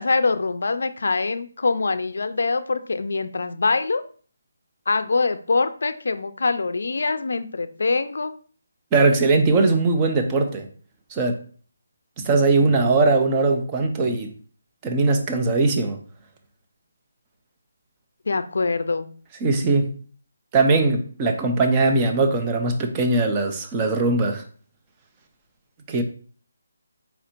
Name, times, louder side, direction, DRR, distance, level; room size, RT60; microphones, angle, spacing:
voice 1, 0.0-4.0 4.9-8.3 18.3-19.1, left 3 dB, 60° left, 12 dB, 0.4 m, -24 dB
voice 2, 8.9-10.7 11.1-11.4 12.2-14.3 14.8-16.0 19.4-19.9 20.5-24.4 25.9-26.0, right 3 dB, 15° right, 4 dB, 0.4 m, -20 dB
4.3 x 2.5 x 4.3 m, 0.43 s
hypercardioid pair, 180°, 0 cm